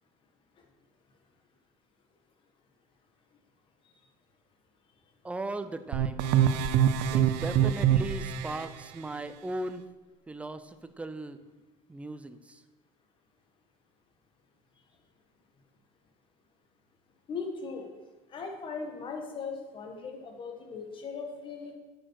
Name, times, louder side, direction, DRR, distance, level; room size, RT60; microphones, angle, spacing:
voice 1, 5.2-6.3 7.1-9.8 10.3-11.4 11.9-12.6, right 2 dB, 10° right, 11 dB, 0.5 m, -37 dB
sound 1, 5.9-8.7, right 9 dB, 75° right, 0.7 m, -25 dB
voice 2, 17.3-17.9 18.3-21.7, left 4 dB, 35° left, 3 dB, 1.7 m, -38 dB
8.9 x 6.4 x 6.5 m, 1.2 s
cardioid pair, 140°, 15 cm